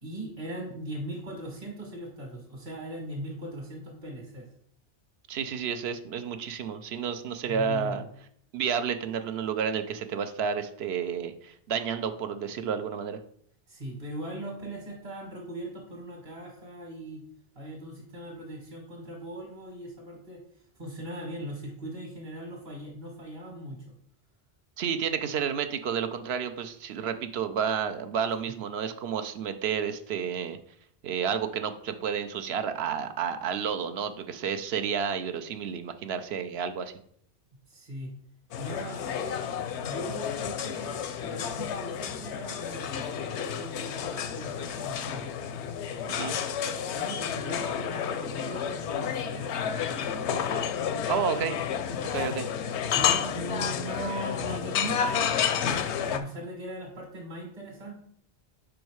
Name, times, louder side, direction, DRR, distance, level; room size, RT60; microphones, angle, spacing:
voice 1, 0.0-4.5 7.5-8.1 13.7-17.2 17.6-23.9 28.5-28.6 37.7-38.1 38.6-39.4 39.8-45.2 46.9-50.3 52.1-52.5 52.9-55.8 56.1-57.9, right 1 dB, 50° right, -1 dB, 1.7 m, -40 dB
voice 2, 5.3-8.0 8.5-13.2 24.8-30.6 31.0-36.9 46.1-46.4 51.1-51.6 52.1-52.5, right 7 dB, 70° right, 9 dB, 0.8 m, -31 dB
sound 1, 38.5-56.2, left 8 dB, 85° left, 0.9 m, -31 dB
5.2 x 5.0 x 4.6 m, 0.64 s
omnidirectional pair, 1.1 m